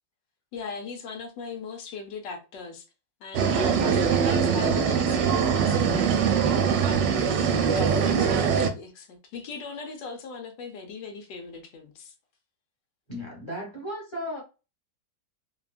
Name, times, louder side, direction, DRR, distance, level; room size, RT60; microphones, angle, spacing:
voice 1, 0.5-2.8 3.2-12.1, left 4 dB, 80° left, 1.4 m, -39 dB
sound 1, 3.3-8.7, right 7 dB, 85° right, 1.2 m, -23 dB
voice 2, 7.8-8.4 13.1-14.4, equal, 20° left, 0.9 m, -35 dB
3.3 x 2.2 x 2.4 m
omnidirectional pair, 1.9 m